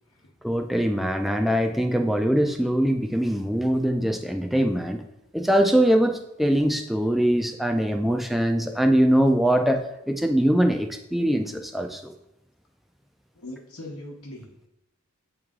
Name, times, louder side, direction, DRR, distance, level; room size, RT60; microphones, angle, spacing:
voice 1, 0.4-5.0 5.3-12.1, equal, ahead, 4 dB, 0.3 m, -22 dB
voice 2, 13.3-14.7, left 1 dB, 80° left, -2 dB, 1.0 m, -41 dB
8.3 x 3.2 x 3.6 m, 0.86 s
head